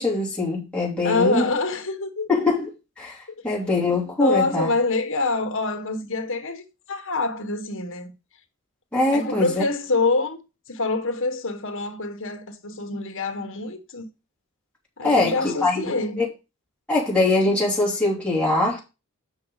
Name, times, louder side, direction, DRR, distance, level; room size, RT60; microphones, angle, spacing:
voice 1, 0.0-1.5 2.3-2.7 3.0-4.7 8.9-9.6 15.0-16.3 16.9-18.8, left 2 dB, 5° left, 2.9 m, -22 dB
voice 2, 1.0-2.3 3.8-8.1 9.1-10.4 10.7-14.1 15.0-16.2, left 3 dB, 60° left, 1.6 m, -26 dB
8.1 x 6.1 x 4.1 m
head